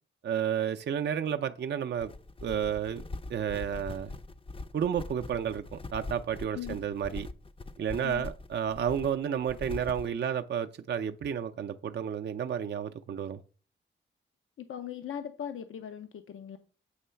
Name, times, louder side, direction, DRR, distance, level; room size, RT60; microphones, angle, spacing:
voice 1, 0.2-2.1 2.4-3.0 3.3-4.1 4.7-7.3 7.8-13.4, right 8 dB, 55° right, 0.5 m, -31 dB
sound 1, 2.0-10.1, left 2 dB, 25° left, 0.5 m, -42 dB
voice 2, 14.6-16.6, left 8 dB, 75° left, 0.6 m, -39 dB
7.8 x 3.1 x 5.6 m
cardioid pair, 60°, 21 cm